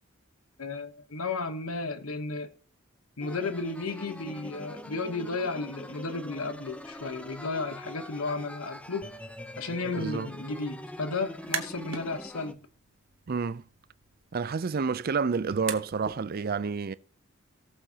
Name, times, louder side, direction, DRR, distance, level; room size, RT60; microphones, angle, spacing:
voice 1, 0.6-2.5 3.2-9.1 9.6-12.6, left 3 dB, 85° left, 1.1 m, -33 dB
sound 1, 3.2-12.5, left 1 dB, 5° left, 0.6 m, -43 dB
voice 2, 10.0-10.3 13.3-13.6 14.3-16.9, right 5 dB, 45° right, 0.5 m, -29 dB
sound 2, 11.3-12.1 12.5-16.2, right 7 dB, 70° right, 1.2 m, -40 dB
18.0 x 6.9 x 2.9 m
head